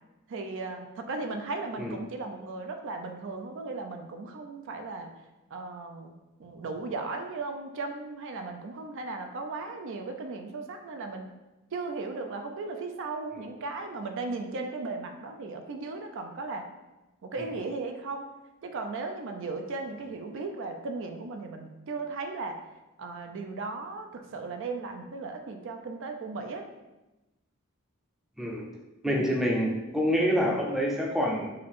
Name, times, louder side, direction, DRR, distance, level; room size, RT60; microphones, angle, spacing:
voice 1, 0.3-5.1 5.5-6.1 6.4-11.3 11.7-16.7 17.2-18.3 18.6-22.6 23.0-26.6 29.0-29.4, right 3 dB, 60° right, 5 dB, 0.4 m, -36 dB
voice 2, 29.0-31.5, equal, ahead, -2 dB, 0.5 m, -27 dB
4.6 x 2.5 x 3.5 m, 1.0 s
head